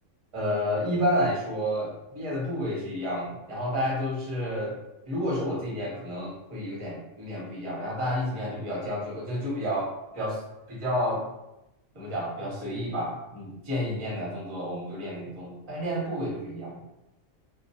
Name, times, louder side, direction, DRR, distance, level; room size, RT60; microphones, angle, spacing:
voice 1, 0.3-4.8 5.1-10.4 10.7-11.2 11.9-16.8, equal, 30° right, -5 dB, 0.7 m, -30 dB
2.2 x 2.1 x 2.7 m, 0.93 s
omnidirectional pair, 1.4 m